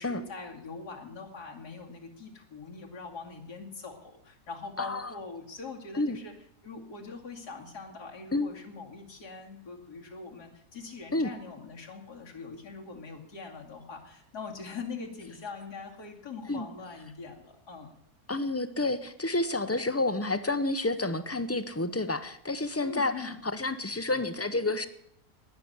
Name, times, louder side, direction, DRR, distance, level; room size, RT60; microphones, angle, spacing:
voice 1, 0.0-6.3 6.6-17.9 22.8-23.4, left 4 dB, 85° left, 1 dB, 3.0 m, -42 dB
voice 2, 4.8-5.1 5.9-6.2 8.3-8.5 11.1-11.3 16.5-16.7 18.3-24.9, left 2 dB, 15° left, 11 dB, 0.5 m, -29 dB
19.0 x 6.9 x 9.5 m, 0.72 s
omnidirectional pair, 1.7 m